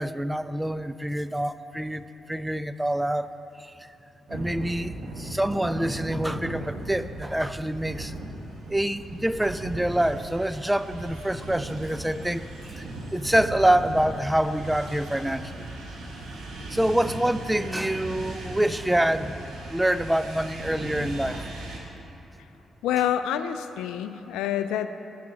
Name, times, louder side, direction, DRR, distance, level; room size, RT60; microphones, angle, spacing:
voice 1, 0.0-3.3 3.6-3.7 4.3-8.1 8.7-12.4 12.7-12.8 13.1-15.7 16.7-21.5, right 1 dB, 10° right, 13 dB, 0.4 m, -26 dB
sound 1, 4.3-21.8, right 1 dB, 70° right, 1.3 m, -37 dB
voice 2, 22.8-24.9, left 10 dB, 80° left, 11 dB, 0.3 m, -27 dB
14.5 x 9.3 x 2.9 m, 2.9 s
hypercardioid pair, 40°, 0 cm